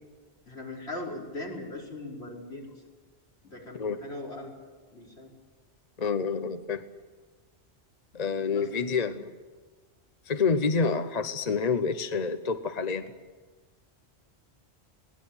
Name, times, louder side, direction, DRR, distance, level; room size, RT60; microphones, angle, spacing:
voice 1, 0.5-2.8 3.4-4.5 4.9-5.3 6.2-6.3 8.5-8.7, left 2 dB, 70° left, -2 dB, 5.4 m, -39 dB
voice 2, 6.0-6.8 8.1-9.3 10.3-13.1, left 5 dB, 40° left, 10 dB, 0.9 m, -28 dB
22.5 x 18.5 x 8.8 m, 1.4 s
omnidirectional pair, 1.1 m